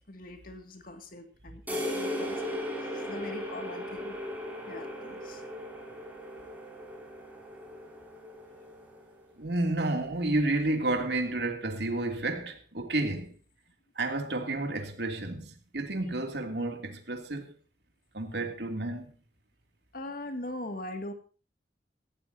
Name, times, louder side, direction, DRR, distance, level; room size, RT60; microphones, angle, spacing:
voice 1, 0.1-4.2 4.7-5.4 19.9-21.1, left 1 dB, 50° left, 2.3 m, -41 dB
sound 1, 1.7-9.2, left 1 dB, 10° right, 6.2 m, -37 dB
voice 2, 9.4-13.3 14.0-17.5 18.1-19.1, right 2 dB, 65° right, 2.9 m, -31 dB
17.5 x 17.5 x 2.8 m
head